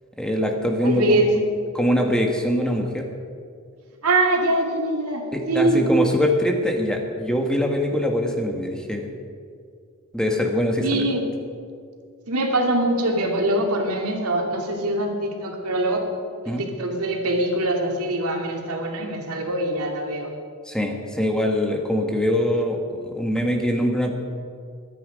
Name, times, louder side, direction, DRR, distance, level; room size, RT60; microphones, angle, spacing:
voice 1, 0.2-1.2 1.7-3.1 5.3-9.1 10.1-11.1 16.5-16.6 20.6-24.1, left 1 dB, 5° left, 2 dB, 1.4 m, -23 dB
voice 2, 0.8-1.3 4.0-5.8 10.8-11.2 12.3-16.0 16.4-20.3, right 1 dB, 80° right, 1 dB, 2.6 m, -23 dB
23.5 x 9.9 x 5.2 m, 2.2 s
head